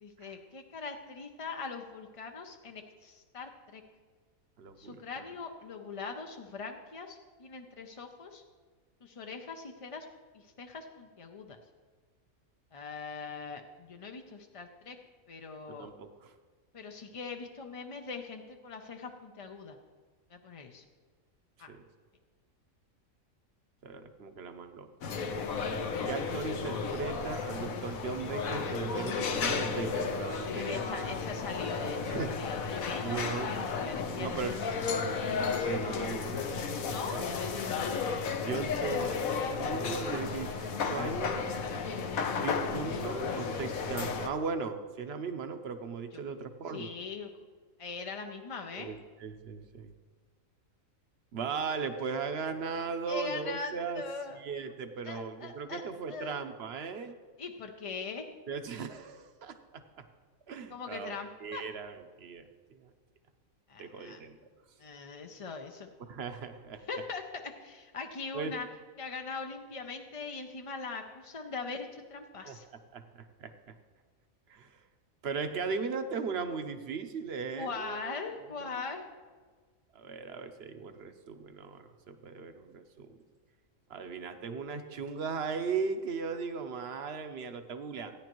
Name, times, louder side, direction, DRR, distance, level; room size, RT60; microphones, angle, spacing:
voice 1, 0.0-3.8 4.8-8.4 9.0-10.1 10.3-11.6 12.7-15.0 15.3-15.9 16.7-19.8 20.3-20.8 21.6-21.7 30.4-34.9 36.9-37.2 46.7-47.3 47.8-48.9 53.1-54.4 55.0-55.8 56.1-56.4 57.4-58.3 60.7-61.7 63.7-64.2 64.8-65.9 66.9-68.7 69.0-72.7 77.5-79.0, left 4 dB, 40° left, 4 dB, 0.4 m, -41 dB
voice 2, 4.6-5.2 15.7-16.3 21.7-21.8 23.8-25.0 26.1-31.2 32.1-32.4 33.0-33.6 34.0-34.6 35.6-36.5 37.1-37.3 38.4-39.1 39.6-41.5 42.3-47.0 48.8-49.9 51.3-54.0 54.4-57.2 58.5-60.0 60.5-62.9 63.8-64.4 66.1-66.8 68.3-68.6 72.5-72.6 72.9-73.0 73.4-73.7 74.5-74.7 75.2-78.3 78.6-78.8 79.9-83.2 83.9-88.1, right 5 dB, 55° right, 8 dB, 0.9 m, -38 dB
sound 1, 25.0-44.3, left 5 dB, 80° left, 1.3 m, -33 dB
16.5 x 10.0 x 3.0 m, 1.5 s
omnidirectional pair, 1.4 m